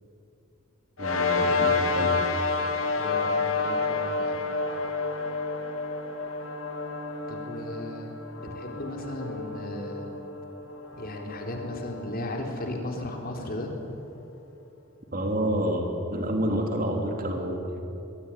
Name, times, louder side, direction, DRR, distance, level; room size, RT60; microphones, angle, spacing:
sound 1, 1.0-13.7, left 4 dB, 85° left, 3.0 m, -30 dB
voice 1, 1.0-2.1 15.1-17.8, equal, 45° right, 3 dB, 3.1 m, -28 dB
voice 2, 2.9-4.4 7.3-10.1 11.0-13.7, left 1 dB, 45° left, 2 dB, 4.0 m, -36 dB
24.5 x 21.0 x 10.0 m, 2.7 s
head